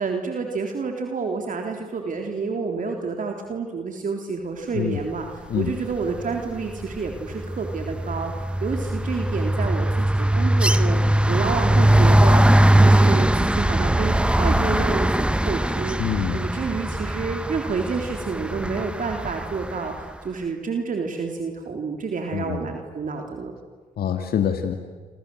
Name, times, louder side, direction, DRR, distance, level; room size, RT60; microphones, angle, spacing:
voice 1, 0.0-8.3 8.6-23.5, right 4 dB, 55° right, 3 dB, 3.8 m, -29 dB
sound 1, 6.0-6.3 6.6-19.7, right 1 dB, 5° right, 1.4 m, -20 dB
voice 2, 16.0-16.4 22.3-22.6 24.0-24.7, left 9 dB, 70° left, 6 dB, 2.1 m, -25 dB
27.0 x 27.0 x 8.0 m, 1.5 s
supercardioid pair, 60°, 16 cm